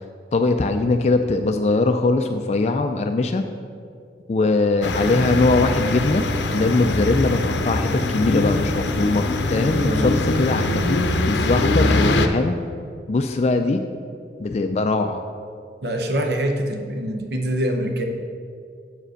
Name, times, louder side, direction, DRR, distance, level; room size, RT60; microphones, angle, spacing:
voice 1, 0.3-3.4 4.3-12.6 13.1-13.8 14.4-15.2, left 3 dB, 35° left, 6 dB, 0.3 m, -21 dB
sound 1, 4.8-12.3, left 2 dB, 80° left, 0.6 m, -22 dB
voice 2, 9.8-10.1 15.8-18.0, right 1 dB, 65° right, 4 dB, 0.8 m, -24 dB
7.7 x 5.0 x 6.4 m, 2.3 s
head